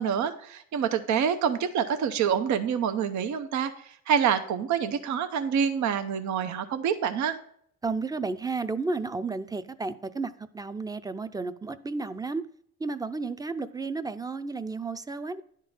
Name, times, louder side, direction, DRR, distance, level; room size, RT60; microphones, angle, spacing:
voice 1, 0.0-7.4, right 8 dB, 70° right, 0.7 m, -27 dB
voice 2, 7.8-12.5 12.8-15.4, right 3 dB, 15° right, 0.5 m, -32 dB
10.5 x 3.7 x 5.4 m
cardioid pair, 90°, 30 cm